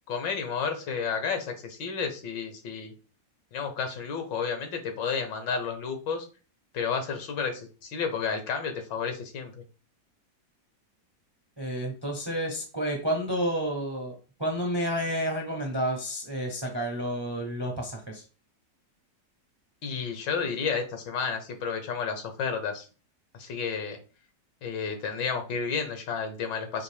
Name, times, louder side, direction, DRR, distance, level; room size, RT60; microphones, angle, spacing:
voice 1, 0.1-2.9 3.5-6.3 6.7-9.6 19.8-22.9 23.3-24.0 24.6-26.8, left 6 dB, 80° left, 6 dB, 1.6 m, -31 dB
voice 2, 11.6-14.1 14.4-18.2, equal, 40° right, 2 dB, 0.3 m, -30 dB
5.1 x 2.7 x 3.3 m, 0.35 s
omnidirectional pair, 1.9 m